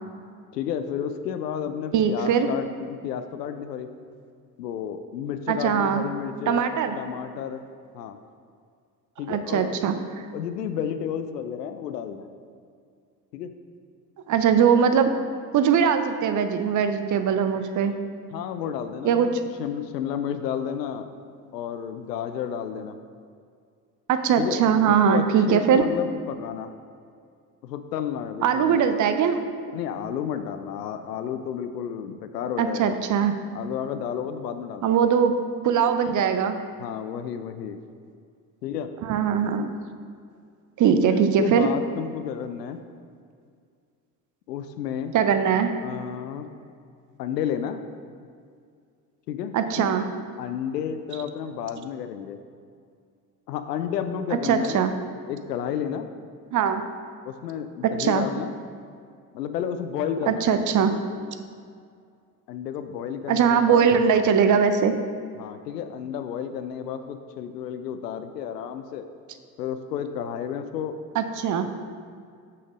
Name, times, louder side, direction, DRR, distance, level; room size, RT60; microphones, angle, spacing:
voice 1, 0.5-3.9 4.6-6.6 7.0-7.6 7.9-8.2 9.2-9.7 10.3-12.3 13.3-13.5 18.3-21.1 21.5-23.0 24.4-26.7 27.6-28.9 29.7-32.9 33.5-34.9 36.8-37.8 38.6-38.9 41.1-42.8 44.5-45.2 45.8-46.5 47.2-47.8 49.3-49.9 50.4-52.4 53.5-54.8 55.3-56.1 57.2-58.5 59.3-61.3 62.5-63.9 65.4-69.1 69.6-71.0, left 8 dB, 80° left, 9 dB, 0.6 m, -31 dB
voice 2, 1.9-2.5 5.5-6.1 6.5-7.0 9.3-9.9 14.3-15.2 15.5-18.0 19.0-19.3 24.1-25.9 28.4-29.4 32.6-33.3 34.8-35.4 35.6-36.6 39.0-39.7 40.8-41.7 45.1-45.7 49.5-50.0 54.5-54.9 56.5-56.8 58.0-58.2 60.3-60.9 63.3-65.0 71.1-71.7, right 7 dB, 40° right, 9 dB, 0.7 m, -21 dB
6.3 x 5.8 x 5.1 m, 2.2 s
hypercardioid pair, 60°, 48 cm